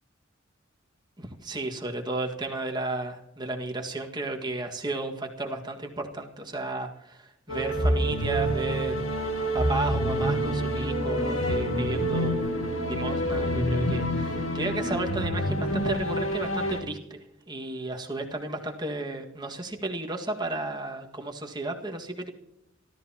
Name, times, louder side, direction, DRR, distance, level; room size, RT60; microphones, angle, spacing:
voice 1, 1.2-9.1 9.5-12.5 12.9-22.3, right 2 dB, 20° right, 2 dB, 1.7 m, -33 dB
sound 1, 7.5-16.8, equal, 90° left, 1.9 m, -27 dB
sound 2, 10.0-15.0, equal, 85° right, 1.9 m, -37 dB
26.0 x 13.5 x 2.9 m, 0.83 s
head